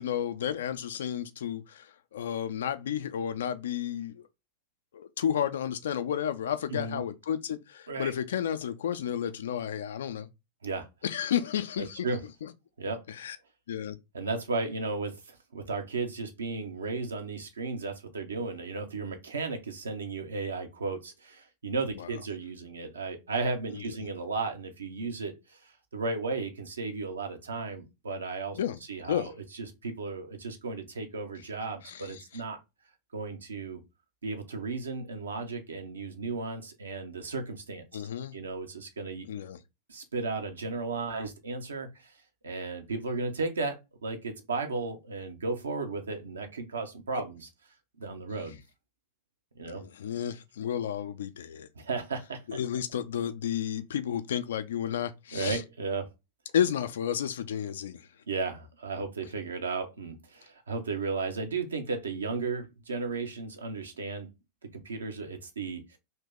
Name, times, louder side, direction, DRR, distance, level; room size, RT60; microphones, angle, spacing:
voice 1, 0.0-4.2 4.9-10.3 11.0-12.1 12.4-12.5 13.1-13.4 13.7-14.0 22.0-22.1 23.7-23.9 28.5-28.8 29.1-29.3 31.8-32.4 37.9-38.4 39.3-39.6 47.1-47.2 49.7-51.7 52.5-55.6 56.5-58.1, left 9 dB, 60° left, 0.4 m, -32 dB
voice 2, 6.7-7.0 7.9-8.1 10.6-10.9 11.8-12.2 12.8-13.0 14.1-28.6 28.9-29.3 29.6-32.6 33.1-33.8 34.2-38.0 38.3-39.3 39.9-42.1 42.4-47.5 48.0-48.6 49.6-49.8 51.8-52.6 55.3-56.1 58.3-64.3 64.7-66.0, right 3 dB, 70° right, 0.8 m, -34 dB
2.8 x 2.7 x 3.7 m
figure-of-eight pair, 90°, 0 cm